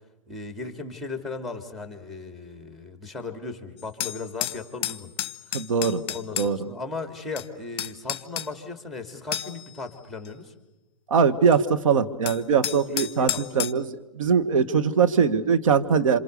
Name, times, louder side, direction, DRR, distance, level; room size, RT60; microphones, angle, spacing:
voice 1, 0.3-5.1 6.1-10.5 12.9-13.6, left 3 dB, ahead, 6 dB, 3.0 m, -37 dB
sound 1, 3.8-6.5 7.4-7.5 7.8-8.5 9.3-9.7 10.2-10.3 11.5-11.6 12.3-13.7, left 11 dB, 50° left, 0.8 m, -31 dB
voice 2, 5.5-6.0 6.4-6.7 11.1-16.2, right 6 dB, 75° right, 9 dB, 1.7 m, -22 dB
28.0 x 26.5 x 6.9 m, 1.0 s
hypercardioid pair, 120°, 17 cm